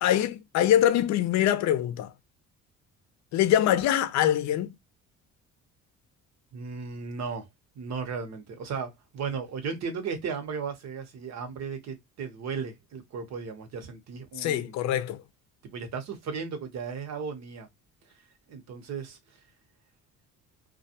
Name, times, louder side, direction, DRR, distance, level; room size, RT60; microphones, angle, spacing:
voice 1, 0.0-2.1 3.3-4.7 14.4-15.2, left 11 dB, 65° left, 0.5 m, -24 dB
voice 2, 6.5-7.5 7.7-14.7 15.7-17.7 18.5-19.2, right 5 dB, 60° right, 1.0 m, -35 dB
2.3 x 2.2 x 2.8 m
supercardioid pair, 70°, 31 cm